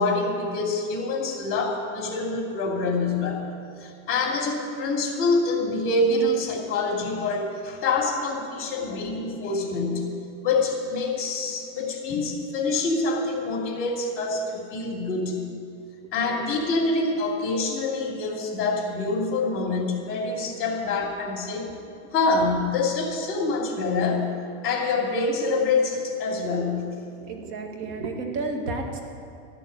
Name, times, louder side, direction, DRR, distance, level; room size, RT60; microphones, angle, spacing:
voice 1, 0.0-3.5 3.8-10.1 10.4-15.4 16.1-21.7 22.1-24.3 24.6-26.9, left 3 dB, 35° left, 0 dB, 2.9 m, -26 dB
voice 2, 8.6-8.9 9.2-9.3 27.2-29.0, right 3 dB, 60° right, 2 dB, 2.0 m, -32 dB
14.0 x 7.0 x 9.9 m, 2.4 s
supercardioid pair, 150°, 38 cm